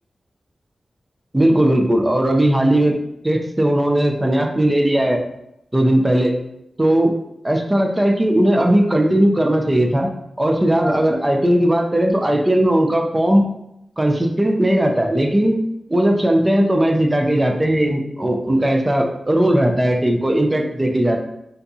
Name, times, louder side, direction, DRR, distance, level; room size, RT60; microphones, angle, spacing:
voice 1, 1.3-3.0 3.2-5.2 5.7-6.4 6.8-7.1 7.4-10.1 10.4-13.5 14.0-15.6 15.9-21.2, right 1 dB, 20° right, 2 dB, 0.4 m, -17 dB
3.8 x 2.6 x 2.3 m, 0.81 s
wide cardioid pair, 95°, 0 cm